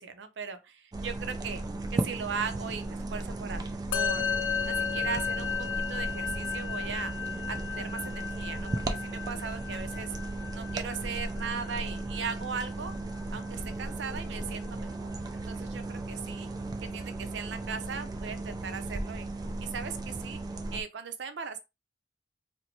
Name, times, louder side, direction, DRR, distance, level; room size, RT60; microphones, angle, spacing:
voice 1, 0.0-1.6 1.9-3.6 3.9-4.3 4.6-10.1 10.5-12.9 13.3-16.5 16.8-19.3 19.6-20.4 20.7-21.6, right 6 dB, 75° right, 0.5 m, -38 dB
sound 1, 0.9-20.8, right 2 dB, 20° right, 0.3 m, -36 dB
Musical instrument, 3.9-13.5, left 7 dB, 85° left, 0.4 m, -35 dB
4.3 x 2.1 x 2.7 m
head